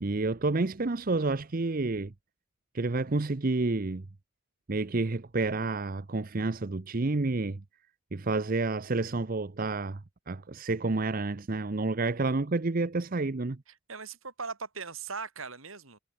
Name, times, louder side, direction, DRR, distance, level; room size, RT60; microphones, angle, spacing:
voice 1, 0.0-2.1 2.7-4.0 4.7-7.6 8.1-13.6, right 3 dB, 40° right, 0.7 m, -29 dB
voice 2, 13.9-16.0, right 5 dB, 80° right, 4.2 m, -39 dB
head